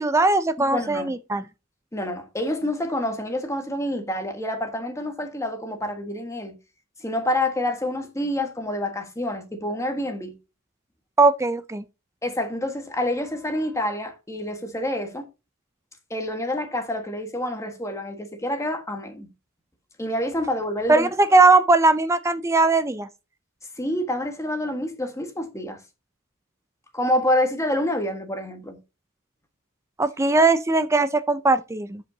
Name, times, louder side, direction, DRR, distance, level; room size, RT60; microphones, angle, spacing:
voice 1, 0.0-1.4 11.2-11.8 20.9-23.1 30.0-32.0, right 3 dB, 15° right, 0.4 m, -19 dB
voice 2, 0.6-1.1 1.9-6.6 7.0-10.3 12.2-15.2 16.1-19.3 20.0-21.1 23.8-25.8 26.9-28.8, left 1 dB, 15° left, 1.4 m, -27 dB
11.5 x 5.4 x 2.7 m
head